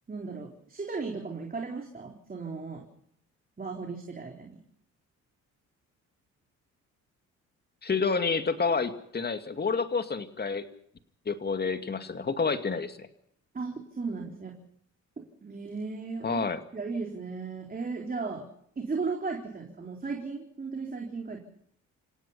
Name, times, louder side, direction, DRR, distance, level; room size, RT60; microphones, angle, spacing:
voice 1, 0.1-2.8 3.6-4.6 13.5-14.6 15.2-16.4 16.7-18.5 18.8-21.4, right 4 dB, 30° right, 2 dB, 3.9 m, -36 dB
voice 2, 7.8-10.7 11.3-13.1 16.2-16.6, left 5 dB, 35° left, 8 dB, 2.4 m, -29 dB
28.5 x 17.0 x 5.7 m, 0.67 s
cardioid pair, 90°, 30 cm